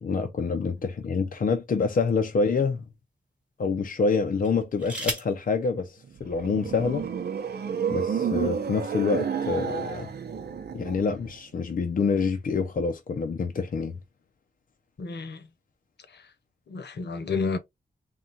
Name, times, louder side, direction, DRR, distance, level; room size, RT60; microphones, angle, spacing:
voice 1, 0.0-2.8 3.6-7.1 7.9-10.1 10.7-14.0, left 4 dB, 50° left, 0.6 m, -27 dB
sound 1, 0.6-1.9 2.6-2.7 4.4-5.4 6.6-6.7 7.0-7.4, right 1 dB, 5° right, 1.2 m, -37 dB
sound 2, 6.0-11.4, right 7 dB, 65° right, 0.7 m, -30 dB
voice 2, 15.0-15.4 16.7-17.6, left 4 dB, 75° left, 1.0 m, -30 dB
3.8 x 2.4 x 4.1 m
wide cardioid pair, 140°, 18 cm